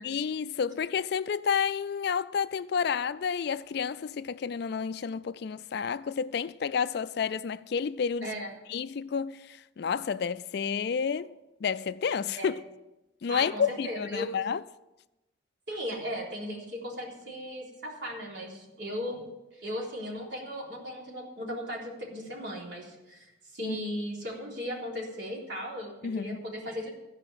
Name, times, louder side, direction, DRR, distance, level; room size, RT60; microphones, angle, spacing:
voice 1, 0.0-8.3 8.7-11.3 11.6-12.6 13.2-14.6 23.6-23.8 26.0-26.4, left 6 dB, 55° left, 0.4 m, -30 dB
voice 2, 13.3-14.3 15.7-19.2 19.5-26.9, equal, 65° right, 3.7 m, -37 dB
15.0 x 5.4 x 8.8 m
head